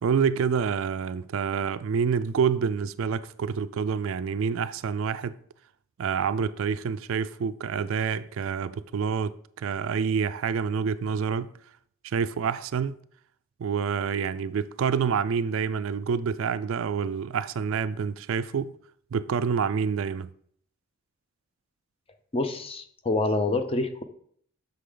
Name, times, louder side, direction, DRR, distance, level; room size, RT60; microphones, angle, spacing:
voice 1, 0.0-5.4 6.0-11.5 12.0-13.0 13.6-18.7 19.1-20.3, right 6 dB, 60° right, 0.3 m, -27 dB
voice 2, 22.3-24.0, left 2 dB, 25° left, 0.6 m, -27 dB
8.2 x 6.3 x 3.8 m
head